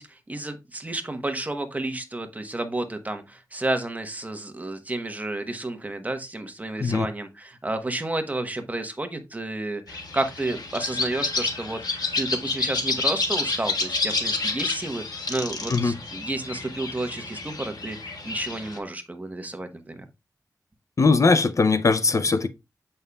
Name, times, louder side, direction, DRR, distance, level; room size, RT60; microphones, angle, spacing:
voice 1, 0.0-15.0 15.3-20.0, right 2 dB, 20° right, 1.1 m, -31 dB
sound 1, 9.9-18.8, left 3 dB, 70° left, 1.6 m, -29 dB
voice 2, 21.0-22.5, left 4 dB, 50° left, 0.5 m, -20 dB
8.0 x 5.5 x 2.3 m
wide cardioid pair, 100°, 7 cm